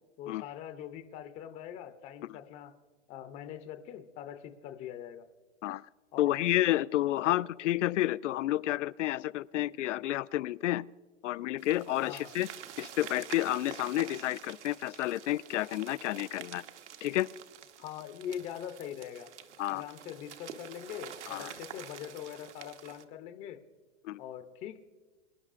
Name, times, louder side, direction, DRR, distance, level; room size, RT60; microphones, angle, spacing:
voice 1, 0.2-2.7 3.1-5.3 6.1-6.5 7.2-7.4 12.0-12.3 17.8-19.3 19.6-23.6 24.2-24.8, left 10 dB, 20° left, 8 dB, 0.5 m, -42 dB
voice 2, 6.2-10.9 11.2-12.5 12.8-16.6 17.0-17.3 19.6-19.8 21.3-21.5 24.0-24.2, left 15 dB, 80° left, 19 dB, 0.5 m, -30 dB
sound 1, 11.6-23.0, right 9 dB, 70° right, 1.2 m, -48 dB
24.5 x 11.0 x 2.5 m, 1.3 s
hypercardioid pair, 140°, 36 cm